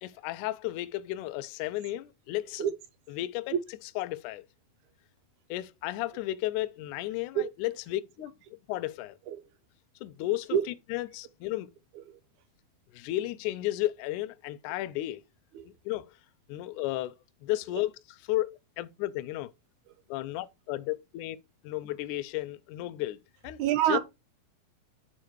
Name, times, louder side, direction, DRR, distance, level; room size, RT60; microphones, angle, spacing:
voice 1, 0.0-2.7 3.1-3.5 4.0-4.4 5.5-8.3 8.7-9.2 10.0-10.6 10.9-11.7 12.9-15.2 15.9-16.1 16.5-17.1 17.4-17.9 18.3-19.5 20.1-21.4 21.6-23.2 23.4-23.6 23.9-24.0, left 16 dB, 80° left, 1.9 m, -33 dB
voice 2, 23.6-24.0, right 10 dB, 70° right, 2.2 m, -27 dB
8.6 x 3.8 x 4.5 m
omnidirectional pair, 3.9 m